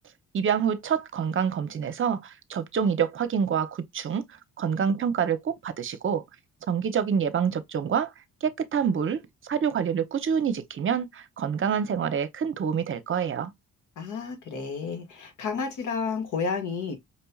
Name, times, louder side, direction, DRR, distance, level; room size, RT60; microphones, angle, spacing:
voice 1, 0.3-4.2 4.6-6.2 6.7-8.1 8.4-13.5, right 7 dB, 45° right, 0.7 m, -27 dB
voice 2, 14.0-16.9, left 5 dB, 75° left, 1.6 m, -31 dB
5.2 x 2.8 x 2.3 m
cardioid pair, 90°, 30 cm